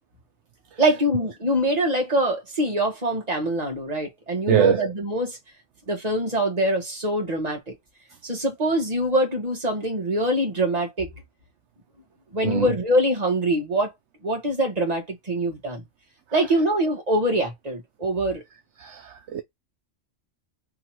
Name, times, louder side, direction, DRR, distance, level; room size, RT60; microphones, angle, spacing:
voice 1, 0.8-5.4 5.9-7.8 8.2-11.1 12.3-13.9 14.2-15.8 16.3-18.4, right 1 dB, 35° right, 1.6 m, -24 dB
voice 2, 4.5-4.8 12.4-12.7 18.8-19.4, right 9 dB, 70° right, 0.8 m, -22 dB
3.8 x 2.9 x 4.4 m
omnidirectional pair, 1.3 m